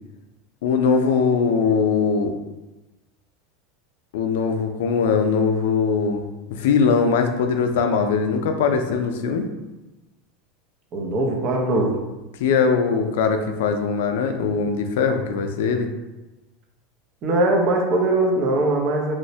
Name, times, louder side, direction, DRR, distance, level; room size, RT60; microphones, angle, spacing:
voice 1, 0.6-2.3 4.1-6.2 6.5-9.5 12.4-15.9, left 5 dB, 85° left, 5 dB, 0.3 m, -21 dB
voice 2, 10.9-12.0 17.2-19.1, right 2 dB, 40° right, 1 dB, 0.5 m, -21 dB
3.0 x 2.0 x 2.7 m, 1.1 s
supercardioid pair, 150°, 0 cm